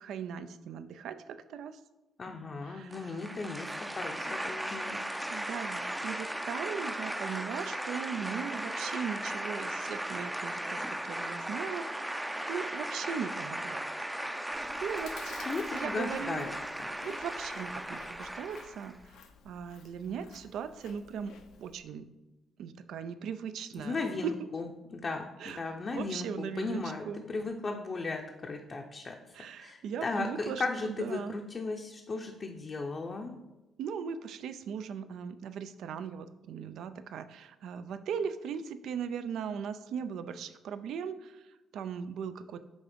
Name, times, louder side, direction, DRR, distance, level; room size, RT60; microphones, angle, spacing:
voice 1, 0.0-1.8 2.6-3.2 5.3-12.0 12.5-13.8 14.8-15.4 15.7-16.5 17.0-18.9 19.4-21.3 21.6-22.1 22.6-24.0 24.2-24.3 25.4-25.6 25.9-27.2 29.3-31.3 33.8-42.6, right 7 dB, 75° right, 11 dB, 0.4 m, -38 dB
voice 2, 2.2-5.0 15.5-16.5 23.8-29.2 29.6-33.4, left 3 dB, 40° left, 2 dB, 0.6 m, -36 dB
sound 1, 2.9-19.0, right 1 dB, 10° right, 0.4 m, -37 dB
Chewing mastication, 14.5-21.8, left 6 dB, 80° left, 0.6 m, -54 dB
6.1 x 3.7 x 5.1 m, 1.1 s
cardioid pair, 90°, 0 cm